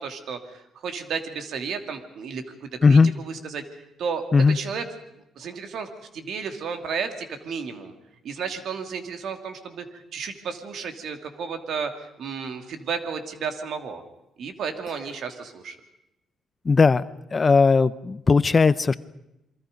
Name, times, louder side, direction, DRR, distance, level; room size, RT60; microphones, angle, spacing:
voice 1, 0.0-3.6 4.0-4.9 5.4-7.9 8.2-11.9 12.2-14.0 14.4-15.8, right 6 dB, 70° right, 6 dB, 2.8 m, -33 dB
voice 2, 2.8-3.1 4.3-4.6 16.6-17.0 17.3-19.0, left 4 dB, 30° left, 16 dB, 0.7 m, -17 dB
27.5 x 23.5 x 5.3 m, 0.86 s
cardioid pair, 90°, 0 cm